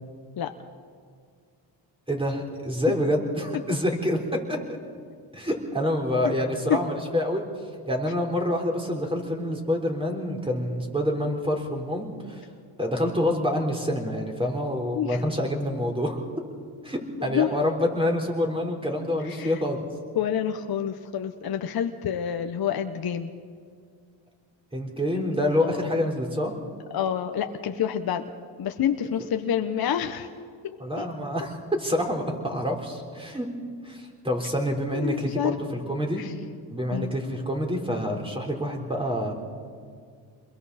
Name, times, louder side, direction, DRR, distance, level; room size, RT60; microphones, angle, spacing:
voice 1, 2.1-4.6 5.3-7.4 7.9-12.4 12.8-16.2 16.8-19.8 24.7-26.5 30.8-33.5 33.8-35.6 35.9-36.2 36.7-39.3, left 1 dB, 10° right, 2 dB, 4.2 m, -27 dB
voice 2, 19.2-19.6 20.1-23.3 25.1-25.8 26.9-28.2 28.6-30.3 31.0-31.1 34.9-35.6 36.2-36.3 36.9-37.1, left 9 dB, 50° left, 6 dB, 1.1 m, -28 dB
28.5 x 22.0 x 4.3 m, 2.2 s
cardioid pair, 95°, 47 cm